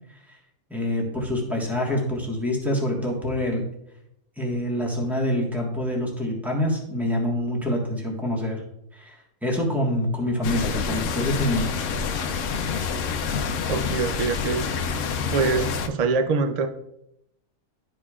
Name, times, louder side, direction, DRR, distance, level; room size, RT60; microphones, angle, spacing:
voice 1, 0.7-3.6 4.4-8.6 8.9-11.8, left 1 dB, ahead, -1 dB, 1.3 m, -26 dB
sound 1, 10.4-15.9, left 5 dB, 65° left, 0.9 m, -27 dB
voice 2, 13.7-15.0 15.3-16.7, right 4 dB, 65° right, 7 dB, 0.3 m, -25 dB
12.0 x 5.0 x 2.4 m, 0.80 s
omnidirectional pair, 1.5 m